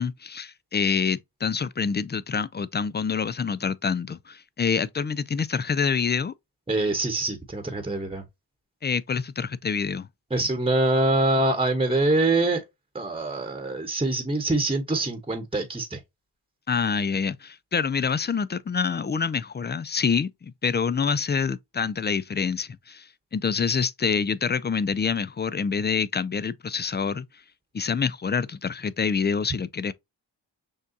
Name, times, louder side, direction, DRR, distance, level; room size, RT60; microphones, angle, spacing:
voice 1, 0.0-6.3 8.8-10.1 16.7-27.3 27.7-29.9, left 6 dB, 25° left, 0.4 m, -26 dB
voice 2, 6.7-8.2 10.3-12.6 12.9-16.0, right 2 dB, 15° right, 1.0 m, -24 dB
6.4 x 2.3 x 2.6 m
cardioid pair, 60°, 43 cm